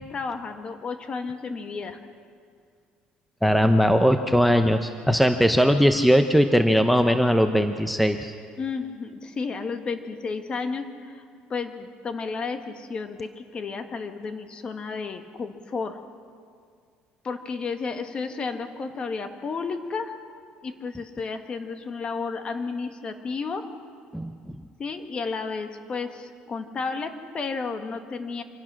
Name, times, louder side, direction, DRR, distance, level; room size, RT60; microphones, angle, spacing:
voice 1, 0.0-2.0 8.6-11.2 11.5-16.0 17.2-20.1 20.6-23.7 24.8-28.4, left 4 dB, 35° left, 7 dB, 1.6 m, -32 dB
voice 2, 3.4-8.3 24.1-24.3, equal, ahead, 7 dB, 0.7 m, -20 dB
25.5 x 16.5 x 6.2 m, 2.2 s
cardioid pair, 130°, 3 cm